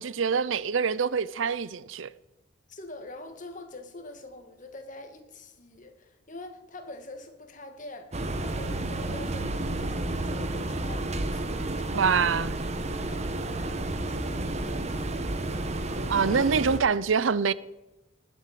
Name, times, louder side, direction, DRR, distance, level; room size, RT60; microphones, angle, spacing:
voice 1, 0.0-2.1 11.9-12.5 16.1-17.5, right 6 dB, 80° right, 0.6 m, -25 dB
voice 2, 2.7-12.4 13.0-15.1 16.3-16.6, left 2 dB, 40° left, 2.1 m, -45 dB
sound 1, 8.1-16.8, right 2 dB, 35° right, 1.1 m, -31 dB
19.0 x 8.0 x 7.6 m
head